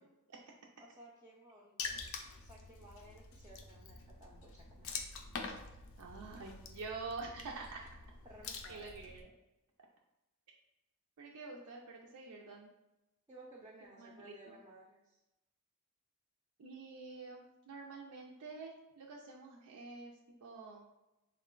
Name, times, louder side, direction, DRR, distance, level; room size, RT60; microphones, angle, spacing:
voice 1, 0.8-2.0 2.4-5.0 5.4-5.5 8.2-8.9 13.3-15.2, right 1 dB, 15° right, -2 dB, 0.4 m, -57 dB
Water / Splash splatter, 1.8-9.2, left 4 dB, 65° left, 0.4 m, -46 dB
voice 2, 6.0-7.8 8.7-9.3 11.2-12.7 14.0-14.6 16.6-20.1 20.4-20.8, right 4 dB, 85° right, -1 dB, 0.4 m, -47 dB
3.7 x 2.2 x 3.7 m, 0.98 s
head